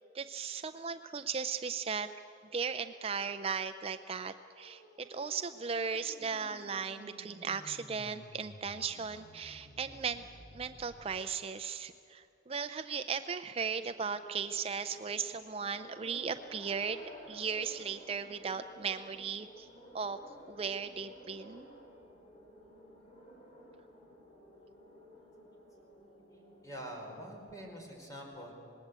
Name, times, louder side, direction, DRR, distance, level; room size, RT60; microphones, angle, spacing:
voice 1, 0.1-2.1 2.5-10.2 10.5-17.0 17.3-19.7 19.9-20.2 20.5-21.7, right 6 dB, 30° right, 10 dB, 0.5 m, -37 dB
sound 1, 4.0-11.1, equal, 75° left, 3.8 m, -55 dB
sound 2, 13.7-27.8, equal, 35° left, 4.3 m, -55 dB
voice 2, 26.3-28.5, equal, 20° left, 0 dB, 4.7 m, -46 dB
26.5 x 20.0 x 8.2 m, 2.8 s
head